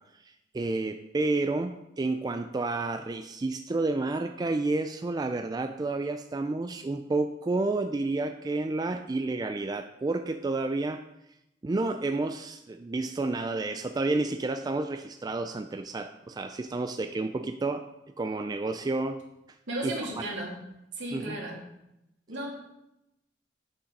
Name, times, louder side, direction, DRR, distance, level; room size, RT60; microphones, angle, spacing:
voice 1, 0.1-11.0 11.6-17.9 18.2-19.2 19.8-20.0 21.1-21.4, right 2 dB, 20° right, 8 dB, 0.3 m, -30 dB
voice 2, 19.7-20.5 20.9-21.6 22.3-22.5, right 1 dB, 75° right, -3 dB, 2.7 m, -34 dB
8.4 x 6.3 x 5.3 m, 0.88 s
head